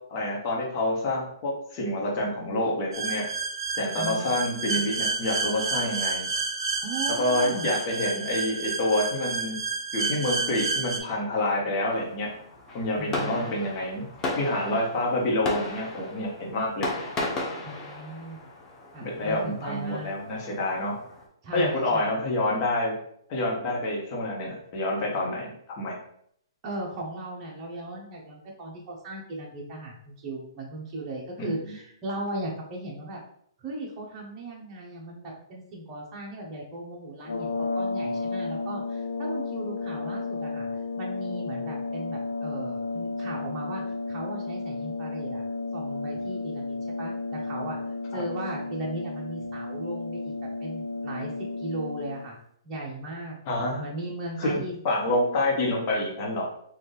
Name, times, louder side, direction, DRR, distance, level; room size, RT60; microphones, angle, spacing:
voice 1, 0.1-3.3 3.8-6.3 7.2-9.6 9.9-12.3 12.7-14.1 14.3-16.9 19.0-21.0 21.5-22.9 23.3-26.0 31.4-31.7 48.1-48.2 53.5-53.8 54.4-54.5 54.8-56.5, left 1 dB, 35° left, -3 dB, 1.4 m, -27 dB
sound 1, 2.9-11.0, right 4 dB, 70° right, 0.7 m, -30 dB
voice 2, 4.0-4.3 6.8-7.7 13.0-13.6 17.6-18.4 18.9-20.1 21.4-22.2 26.6-33.2 33.6-40.7 41.0-43.8 44.1-45.4 45.7-47.8 48.1-50.3 50.6-51.3 51.6-52.4 52.6-53.3 53.8-54.8, right 1 dB, 25° right, -3 dB, 1.3 m, -37 dB
Fireworks, 11.9-21.2, left 2 dB, 20° left, 0.9 m, -36 dB
sound 2, 37.2-52.3, left 3 dB, 90° left, 0.4 m, -33 dB
4.2 x 2.8 x 3.4 m, 0.68 s
hypercardioid pair, 135°, 3 cm